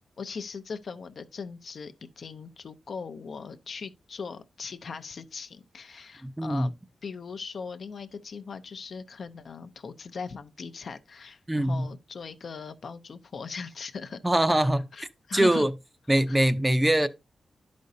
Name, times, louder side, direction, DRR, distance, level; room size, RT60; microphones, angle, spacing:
voice 1, 0.2-6.7 7.0-14.2 14.9-15.7 16.3-16.4, left 5 dB, 60° left, 0.6 m, -39 dB
voice 2, 6.2-6.7 11.5-11.9 14.2-14.8 15.3-15.7 16.1-17.1, right 1 dB, 10° right, 0.5 m, -23 dB
11.5 x 5.2 x 2.7 m
wide cardioid pair, 105°, 0 cm